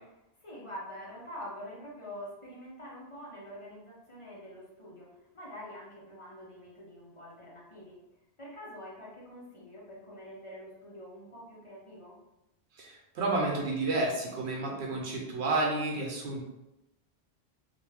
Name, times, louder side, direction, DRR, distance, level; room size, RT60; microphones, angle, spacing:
voice 1, 0.4-5.1 5.3-8.0 8.4-12.2, equal, 30° left, -6 dB, 0.8 m, -45 dB
voice 2, 12.8-16.4, right 2 dB, 80° right, -1 dB, 0.9 m, -31 dB
2.5 x 2.2 x 3.3 m, 0.91 s
omnidirectional pair, 1.1 m